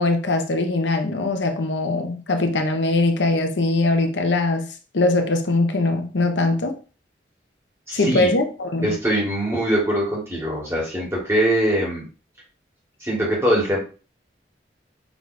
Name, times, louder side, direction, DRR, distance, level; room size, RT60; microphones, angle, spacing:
voice 1, 0.0-6.8 7.9-9.0, left 2 dB, 85° left, 0.7 m, -21 dB
voice 2, 7.9-8.3 8.8-12.0 13.0-13.8, right 1 dB, 15° right, 1.7 m, -22 dB
6.2 x 3.2 x 2.6 m
head